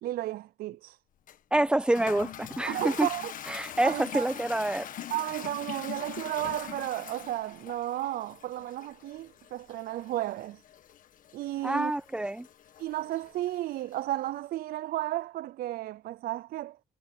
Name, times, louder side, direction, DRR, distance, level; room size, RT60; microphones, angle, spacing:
voice 1, 0.0-1.0 2.7-3.3 3.8-4.3 5.1-10.6 11.3-11.9 12.8-16.8, right 14 dB, 65° right, 0.4 m, -33 dB
Toilet flush, 1.3-14.1, left 10 dB, 55° left, 1.5 m, -44 dB
voice 2, 1.5-3.1 3.5-4.9 11.6-12.5, right 1 dB, 5° right, 0.9 m, -27 dB
cardioid pair, 110°, 17 cm